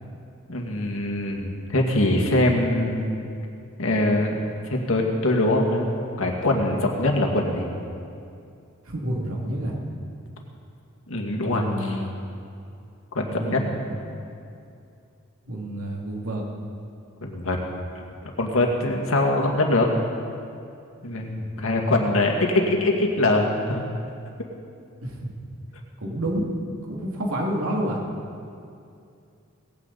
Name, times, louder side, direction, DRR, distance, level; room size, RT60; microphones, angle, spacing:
voice 1, 0.5-3.2 3.8-4.4 4.7-7.7 11.1-12.0 13.1-13.6 17.2-17.6 18.2-19.9 21.0-23.9, left 2 dB, 75° left, 0 dB, 2.1 m, -23 dB
voice 2, 8.8-9.8 11.4-12.1 13.3-14.0 15.5-16.4 22.2-22.4 25.0-25.3 26.0-26.5 26.9-28.0, right 1 dB, 90° right, -1 dB, 2.4 m, -29 dB
19.0 x 15.5 x 4.1 m, 2.5 s
head